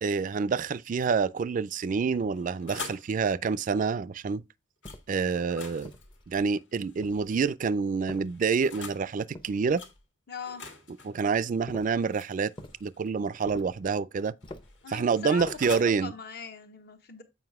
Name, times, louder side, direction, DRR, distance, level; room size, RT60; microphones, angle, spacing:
voice 1, 0.0-4.4 5.1-5.9 6.3-9.8 11.0-12.5 12.8-14.3 14.9-16.1, right 5 dB, 45° right, 0.3 m, -27 dB
sound 1, 2.1-3.1 4.8-5.0 5.4-7.3 8.1-9.1 9.8-9.9 10.4-13.1 14.2-15.9, left 4 dB, 75° left, 1.7 m, -45 dB
sound 2, 4.8-5.3 5.8-6.5 7.0-7.5 8.1-8.7 9.3-10.0 11.7-12.0 12.6-12.8 13.5-13.9 14.4-14.8 15.4-15.8, left 1 dB, 25° left, 0.7 m, -46 dB
voice 2, 10.3-10.6 14.8-15.6 16.0-17.2, left 5 dB, 60° left, 1.1 m, -40 dB
7.9 x 4.9 x 3.5 m
head